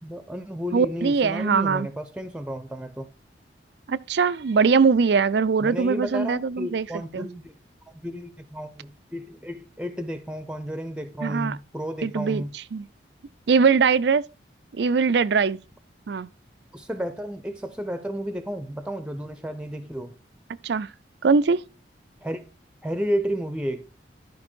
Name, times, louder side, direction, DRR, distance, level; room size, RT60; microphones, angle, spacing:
voice 1, 0.0-3.1 5.6-7.5 7.9-12.5 16.7-20.1 22.2-22.4 22.8-23.9, equal, 5° right, 0.7 m, -32 dB
voice 2, 0.7-1.9 3.9-6.9 7.1-7.3 11.2-11.6 12.0-12.4 12.7-12.9 13.5-14.2 14.8-15.6 16.1-16.3 20.6-20.9 21.2-21.6, right 5 dB, 70° right, 0.4 m, -21 dB
12.0 x 5.3 x 4.4 m
head